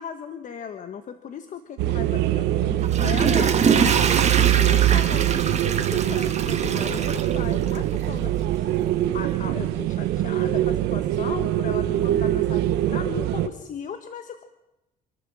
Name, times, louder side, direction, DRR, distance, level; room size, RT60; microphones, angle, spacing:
voice 1, 0.0-8.7 9.1-14.5, left 7 dB, 50° left, 8 dB, 1.4 m, -36 dB
sound 1, 1.8-13.5, right 13 dB, 90° right, 1.4 m, -23 dB
Water / Toilet flush, 2.7-8.0 8.4-8.5, right 6 dB, 40° right, 2.6 m, -24 dB
27.5 x 12.5 x 7.6 m, 0.95 s
cardioid pair, 110°, 17 cm